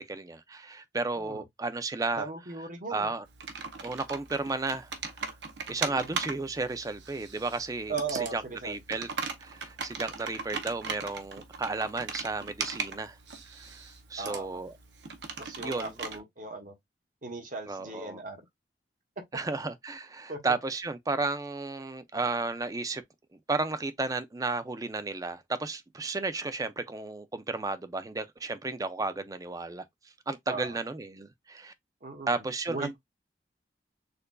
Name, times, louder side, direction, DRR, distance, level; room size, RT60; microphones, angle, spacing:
voice 1, 0.0-2.3 2.9-3.2 3.8-4.9 5.7-7.9 8.3-9.1 9.4-13.2 13.6-13.7 14.1-14.7 15.6-15.9 17.7-18.2 19.3-23.0 23.5-29.8 30.3-31.7 32.3-33.0, right 3 dB, 20° right, 0.4 m, -33 dB
voice 2, 1.1-1.4 2.1-3.1 5.8-6.1 7.9-8.8 14.2-14.5 15.4-16.7 17.2-18.4 20.3-20.6 30.5-30.8 32.0-33.0, right 4 dB, 50° right, 1.0 m, -38 dB
Computer keyboard, 3.3-16.2, right 5 dB, 80° right, 0.8 m, -39 dB
6.7 x 2.6 x 2.3 m
head